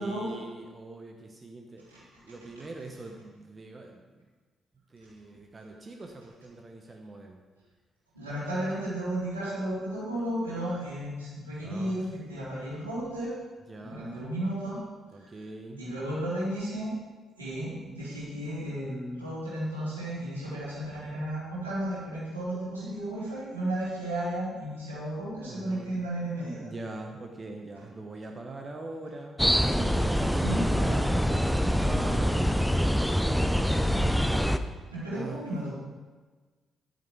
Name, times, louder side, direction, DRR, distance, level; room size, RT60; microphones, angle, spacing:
voice 1, 0.0-4.3 4.9-7.4 11.6-12.2 13.7-14.4 15.1-15.8 25.5-26.0 26.6-29.4 29.8-32.4 32.7-33.7 34.4-34.6 35.1-35.5, right 2 dB, 30° right, 2 dB, 1.1 m, -43 dB
voice 2, 8.1-13.3 13.8-14.8 15.8-16.9 17.4-26.6 30.4-30.6 34.9-35.7, right 1 dB, 85° right, -10 dB, 3.6 m, -33 dB
sound 1, 29.4-34.6, equal, ahead, 0.7 m, -25 dB
11.0 x 9.3 x 4.7 m, 1.3 s
figure-of-eight pair, 40°, 0 cm